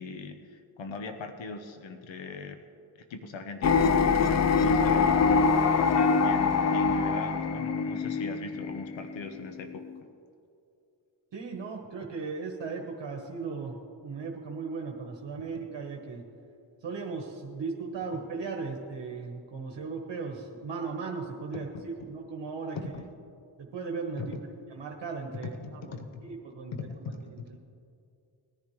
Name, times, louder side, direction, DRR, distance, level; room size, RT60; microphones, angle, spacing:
voice 1, 0.0-2.6 2.9-5.3 5.8-9.8 22.7-23.1 24.2-24.3 25.6-26.3 26.7-27.2, left 3 dB, 90° left, 7 dB, 1.0 m, -40 dB
sound 1, 3.6-10.0, left 5 dB, 35° left, 0.5 m, -24 dB
voice 2, 11.3-16.2 16.8-22.8 23.6-24.3 24.7-26.0 26.2-26.7 27.0-27.6, right 4 dB, 70° right, 0 dB, 1.3 m, -37 dB
19.5 x 10.5 x 3.1 m, 2.5 s
wide cardioid pair, 105°, 45 cm